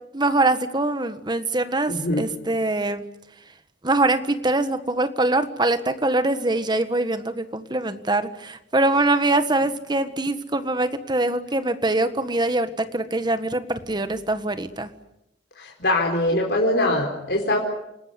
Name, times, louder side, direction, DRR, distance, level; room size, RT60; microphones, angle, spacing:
voice 1, 0.1-3.0 3.8-14.9, right 2 dB, 25° right, 10 dB, 1.5 m, -23 dB
voice 2, 1.9-2.2 15.6-17.6, left 1 dB, 65° left, -1 dB, 4.6 m, -22 dB
28.5 x 20.0 x 9.6 m, 0.87 s
head